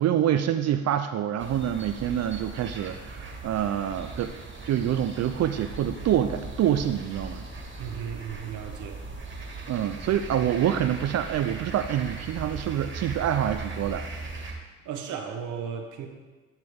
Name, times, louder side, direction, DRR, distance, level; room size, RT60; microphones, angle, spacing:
voice 1, 0.0-4.3 4.7-7.5 9.7-14.1, right 10 dB, 60° right, 9 dB, 0.5 m, -26 dB
sound 1, 1.4-14.5, right 3 dB, 40° right, 1.7 m, -39 dB
voice 2, 7.8-9.0 14.8-16.1, right 7 dB, 85° right, 4 dB, 1.1 m, -35 dB
11.0 x 5.9 x 3.6 m, 1.3 s
cardioid pair, 90°, 30 cm